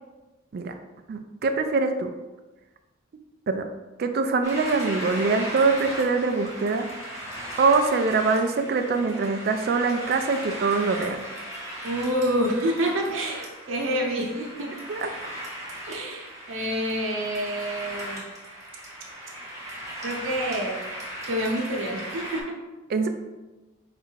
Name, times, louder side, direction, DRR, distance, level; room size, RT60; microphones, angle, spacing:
voice 1, 1.1-2.1 3.5-3.7 4.0-6.9 7.6-11.2 14.9-15.1 22.9-23.1, right 4 dB, 50° right, 6 dB, 0.3 m, -23 dB
sound 1, 4.4-22.4, equal, 15° right, 0.9 m, -37 dB
voice 2, 11.8-14.7 15.9-18.2 20.0-20.8 21.3-22.6, equal, 75° right, -1 dB, 0.8 m, -27 dB
4.4 x 2.5 x 4.6 m, 1.1 s
head